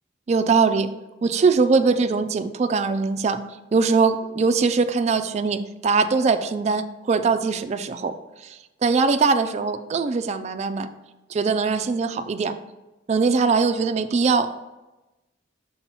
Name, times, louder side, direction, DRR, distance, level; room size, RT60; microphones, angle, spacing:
voice 1, 0.3-0.9 1.2-3.4 3.7-8.1 8.4-10.9 11.3-12.6 13.1-14.5, right 4 dB, 35° right, 9 dB, 0.3 m, -21 dB
6.0 x 2.8 x 5.5 m, 1.1 s
head